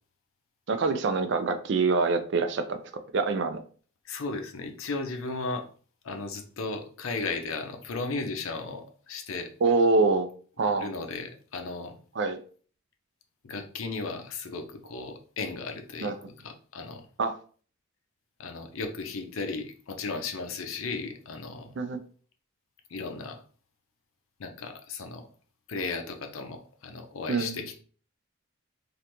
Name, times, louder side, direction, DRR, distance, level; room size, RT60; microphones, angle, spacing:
voice 1, 0.7-2.8 3.1-3.6 9.6-10.3 10.6-10.9 12.2-12.4 16.0-16.1 17.2-17.3 21.8-22.0 27.3-27.6, right 3 dB, 55° right, 8 dB, 0.4 m, -25 dB
voice 2, 4.0-5.7 6.0-9.5 10.8-11.9 13.4-17.0 18.4-21.7 22.9-23.4 24.4-25.3 25.7-27.8, left 3 dB, 80° left, 6 dB, 0.6 m, -35 dB
3.3 x 2.5 x 2.9 m, 0.42 s
head